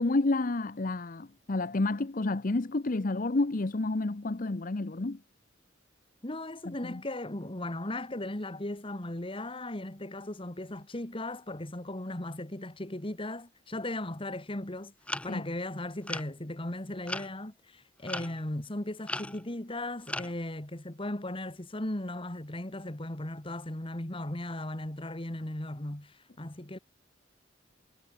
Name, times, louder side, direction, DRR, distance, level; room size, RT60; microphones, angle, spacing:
voice 1, 0.0-5.2 6.7-7.0 15.3-15.5, left 2 dB, 45° left, 0.8 m, -30 dB
voice 2, 6.2-14.9 15.2-26.8, left 1 dB, 30° left, 2.0 m, -37 dB
sound 1, 15.1-15.4 16.0-16.3 17.1-17.3 18.1-18.4 19.1-19.5 20.1-20.3, left 1 dB, 5° left, 0.6 m, -36 dB
head